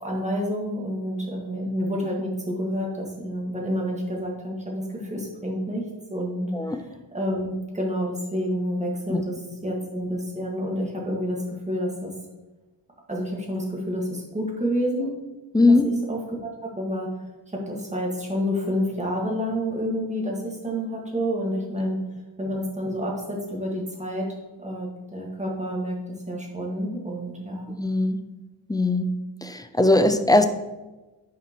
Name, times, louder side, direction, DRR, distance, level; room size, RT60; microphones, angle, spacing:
voice 1, 0.0-6.8 7.1-12.1 13.1-15.1 15.7-17.1 17.5-22.0 22.4-24.3 24.6-27.7, equal, 15° right, -1 dB, 1.6 m, -29 dB
voice 2, 15.5-15.9 27.7-28.2 28.7-29.1 29.4-30.5, left 2 dB, 10° left, 8 dB, 0.3 m, -20 dB
9.5 x 5.1 x 3.0 m, 1.1 s
wide cardioid pair, 115°, 45 cm